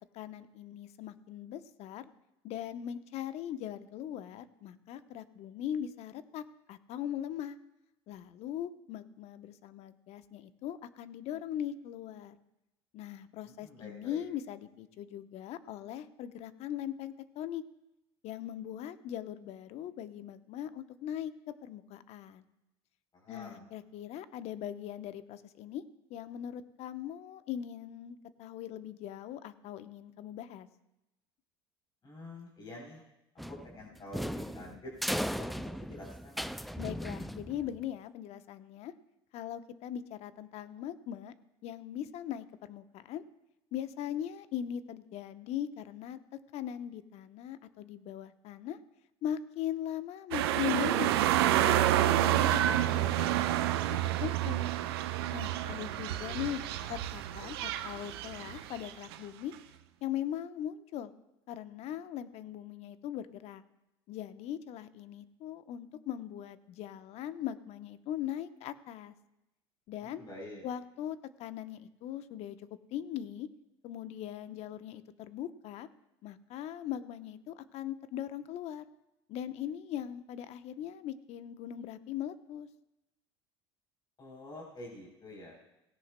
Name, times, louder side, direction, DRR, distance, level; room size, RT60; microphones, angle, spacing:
voice 1, 0.1-2.0 2.4-7.6 8.1-12.4 12.9-17.6 18.2-22.4 23.3-25.8 26.1-30.7 36.8-38.9 39.3-41.3 41.6-43.2 43.7-48.8 49.2-51.1 51.6-53.8 54.2-54.7 55.3-56.6 56.9-59.5 60.0-61.1 61.5-63.6 64.1-69.1 69.9-70.2 70.6-73.5 73.8-75.9 76.2-78.9 79.3-82.7, left 10 dB, 55° left, 12 dB, 0.9 m, -40 dB
voice 2, 13.4-14.2 23.1-23.7 32.0-33.0 33.5-34.9 35.3-36.4 55.6-55.8 56.0-56.5 70.0-70.6 84.2-85.6, left 1 dB, 35° left, -2 dB, 3.7 m, -48 dB
sound 1, 33.4-37.8, equal, ahead, 0.4 m, -37 dB
sound 2, 50.3-59.1 59.5-59.6, right 13 dB, 75° right, 0.7 m, -29 dB
17.5 x 16.5 x 2.2 m, 0.93 s
hypercardioid pair, 70°, 13 cm